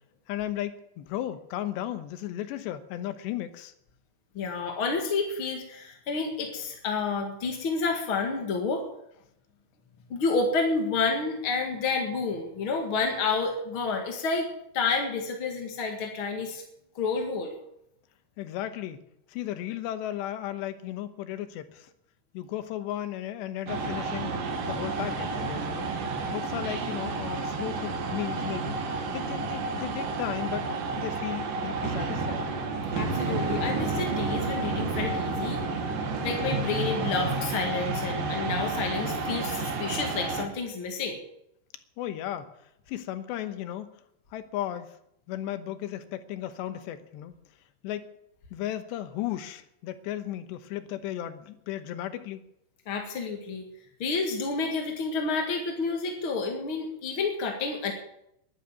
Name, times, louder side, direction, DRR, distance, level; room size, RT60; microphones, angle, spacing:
voice 1, 0.3-3.7 18.4-19.0 19.3-21.9 22.3-24.3 24.6-25.9 26.3-28.7 29.1-30.7 31.0-32.5 42.0-42.5 42.9-43.9 44.3-44.9 45.3-47.3 47.8-48.1 48.5-52.4, left 12 dB, 80° left, 11 dB, 3.2 m, -35 dB
voice 2, 4.3-8.8 10.1-14.5 14.7-16.6 16.9-17.6 32.9-35.6 36.2-41.2 52.8-53.6 54.0-57.9, left 4 dB, 50° left, 3 dB, 1.7 m, -29 dB
sound 1, 23.7-40.5, right 3 dB, 60° right, 3.1 m, -30 dB
11.5 x 11.5 x 9.3 m, 0.77 s
omnidirectional pair, 5.1 m